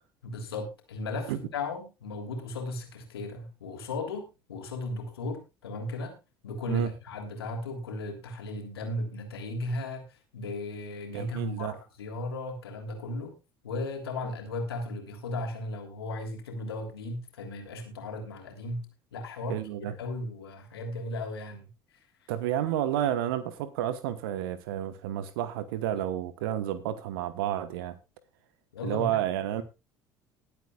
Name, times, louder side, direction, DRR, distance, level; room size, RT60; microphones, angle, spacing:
voice 1, 0.2-6.2 6.4-13.3 13.6-22.3 28.7-29.2, left 2 dB, 80° left, 3 dB, 3.2 m, -36 dB
voice 2, 11.1-11.8 19.5-19.9 22.3-27.9 28.8-29.6, right 11 dB, 70° right, 14 dB, 1.2 m, -30 dB
21.0 x 8.4 x 2.4 m, 0.27 s
figure-of-eight pair, 60°, 13 cm